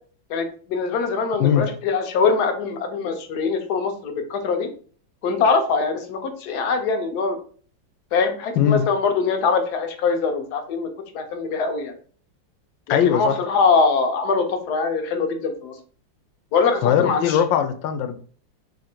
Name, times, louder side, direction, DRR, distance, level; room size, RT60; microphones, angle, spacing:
voice 1, 0.3-4.7 5.2-7.4 8.1-11.9 12.9-15.8 16.5-17.4, left 4 dB, 65° left, 6 dB, 1.1 m, -23 dB
voice 2, 12.9-13.4 16.8-18.1, left 9 dB, 85° left, 8 dB, 1.3 m, -20 dB
3.2 x 2.5 x 4.3 m, 0.43 s
omnidirectional pair, 2.0 m